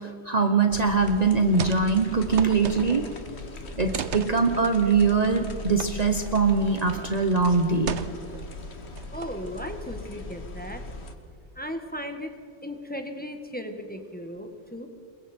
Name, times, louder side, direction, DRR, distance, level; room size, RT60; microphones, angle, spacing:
voice 1, 0.0-3.1 3.8-7.9, right 4 dB, 40° right, 5 dB, 1.2 m, -22 dB
sound 1, 0.7-11.2, left 2 dB, 75° left, 1.8 m, -39 dB
sound 2, 1.5-3.2 3.9-4.4 5.8-5.9 6.3-6.4 6.9-7.1 7.9-8.4 9.0-9.5, right 7 dB, 90° right, 1.2 m, -34 dB
voice 2, 9.1-10.8 11.5-12.3 12.6-14.9, equal, 10° left, 5 dB, 1.7 m, -36 dB
28.5 x 22.5 x 4.5 m, 2.3 s
omnidirectional pair, 1.1 m